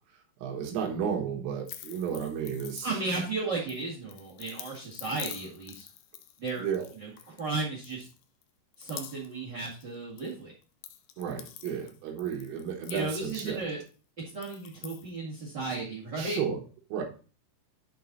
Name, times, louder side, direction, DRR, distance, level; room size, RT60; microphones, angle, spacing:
voice 1, 0.1-2.9 6.6-6.9 11.2-13.7 16.2-16.6 16.9-17.0, right 7 dB, 90° right, 1 dB, 4.0 m, -33 dB
sound 1, 1.6-3.3 3.7-7.5 7.8-8.4 8.7-9.4 9.6-10.3 10.6-13.9 14.3-15.1, left 11 dB, 90° left, 2.3 m, -46 dB
voice 2, 2.8-5.8 6.4-6.7 7.0-8.1 8.8-10.5 12.9-13.8 14.3-16.4, right 3 dB, 70° right, -3 dB, 1.0 m, -34 dB
10.5 x 4.2 x 4.0 m, 0.36 s
omnidirectional pair, 5.6 m